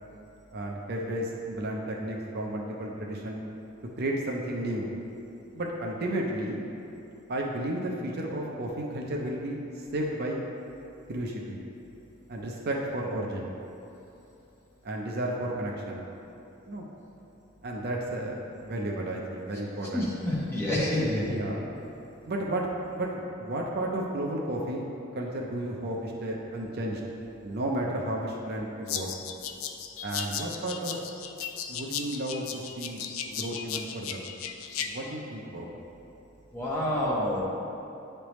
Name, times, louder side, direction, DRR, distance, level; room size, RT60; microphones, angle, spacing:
voice 1, 0.5-3.4 4.0-4.9 5.5-6.7 7.3-10.4 11.1-11.6 12.3-13.5 14.8-16.0 16.7-16.9 17.6-20.1 21.3-21.6 22.3-22.7 22.9-24.8 25.1-27.1 27.4-29.2 30.0-31.0 31.7-34.2 34.8-35.7, right 1 dB, 50° right, -1 dB, 0.6 m, -33 dB
voice 2, 19.9-21.3 36.5-37.4, left 1 dB, 10° left, -7 dB, 1.1 m, -28 dB
sound 1, 28.9-34.9, left 8 dB, 85° left, 0.4 m, -36 dB
9.3 x 3.3 x 3.0 m, 2.9 s
head